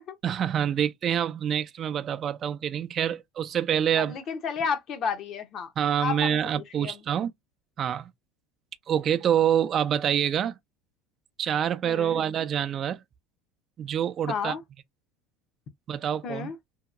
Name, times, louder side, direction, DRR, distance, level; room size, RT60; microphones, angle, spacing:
voice 1, 0.2-4.2 5.8-7.3 7.8-8.1 8.9-10.6 11.4-13.0 13.8-14.5 15.9-16.5, right 9 dB, 40° right, 0.5 m, -26 dB
voice 2, 4.0-5.7 6.0-7.0 11.8-12.2 14.3-14.6 16.2-16.6, left 6 dB, 50° left, 0.8 m, -32 dB
2.8 x 2.8 x 2.5 m
supercardioid pair, 105°, 0 cm